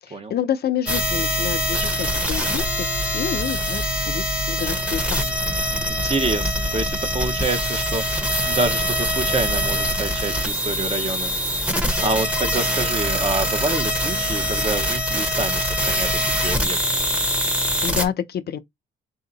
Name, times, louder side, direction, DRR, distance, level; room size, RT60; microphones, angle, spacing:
voice 1, 0.0-5.3 17.8-18.6, left 9 dB, 55° left, 0.6 m, -28 dB
sound 1, 0.9-18.1, equal, 5° right, 1.0 m, -23 dB
voice 2, 5.9-11.7 12.0-17.0, right 3 dB, 30° right, 0.9 m, -27 dB
3.4 x 2.8 x 4.0 m
cardioid pair, 90°, 20 cm